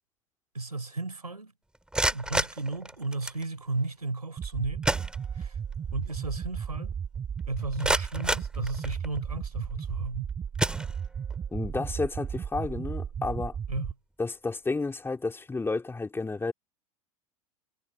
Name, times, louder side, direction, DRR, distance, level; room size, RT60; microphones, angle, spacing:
voice 1, 0.5-1.5 2.1-4.8 5.3-5.6 5.9-7.0 7.5-10.3 13.7-13.9, right 3 dB, 90° right, 3.6 m, -34 dB
sound 1, 1.7-3.5 4.4-4.5 4.8-5.7 6.1-6.2 6.7-6.8 7.4-9.3 9.9-10.1 10.6-11.4, right 1 dB, 5° right, 2.6 m, -31 dB
sound 2, 4.4-13.9, right 7 dB, 25° right, 1.6 m, -35 dB
voice 2, 11.5-13.6 14.2-16.5, left 3 dB, 10° left, 2.8 m, -31 dB
figure-of-eight pair, 85°, 19 cm